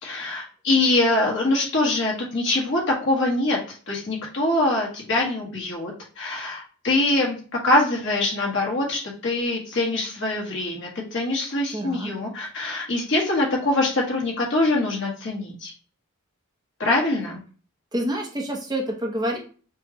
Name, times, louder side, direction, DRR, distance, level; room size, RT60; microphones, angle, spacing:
voice 1, 0.0-7.4 7.6-15.7 16.8-17.4, left 2 dB, 60° left, -1 dB, 1.3 m, -24 dB
voice 2, 11.7-12.1 17.9-19.4, right 1 dB, 20° right, 1 dB, 0.6 m, -27 dB
5.3 x 2.2 x 2.9 m, 0.39 s
head